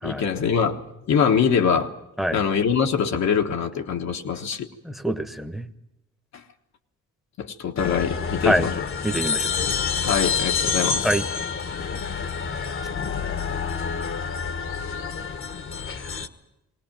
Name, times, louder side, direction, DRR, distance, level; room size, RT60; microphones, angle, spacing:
voice 1, 0.0-1.9 2.3-4.7 6.3-6.4 7.4-8.9 10.1-11.1, left 7 dB, 65° left, 1.4 m, -23 dB
voice 2, 4.8-5.7 8.4-8.7 9.0-9.5 11.0-11.2, right 1 dB, ahead, 1.3 m, -25 dB
sound 1, 7.8-16.3, left 5 dB, 45° left, 1.3 m, -28 dB
19.5 x 18.5 x 9.0 m
cardioid pair, 90°, 30 cm